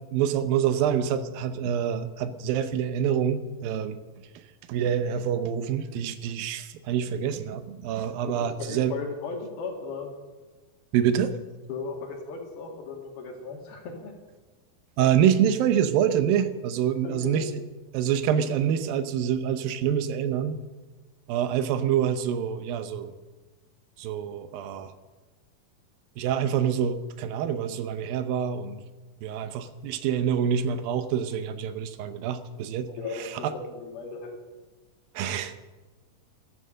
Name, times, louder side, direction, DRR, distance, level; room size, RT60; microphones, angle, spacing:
voice 1, 0.1-4.0 4.7-8.9 10.9-11.3 15.0-17.5 17.9-20.6 21.3-23.1 24.0-24.9 26.2-28.8 29.2-32.9 33.1-33.5 35.2-35.6, right 9 dB, 80° right, 11 dB, 2.5 m, -26 dB
voice 2, 8.3-10.1 11.7-14.1 17.0-17.4 32.9-34.4, left 4 dB, 85° left, 2 dB, 4.1 m, -36 dB
13.5 x 13.5 x 6.4 m, 1.2 s
omnidirectional pair, 4.2 m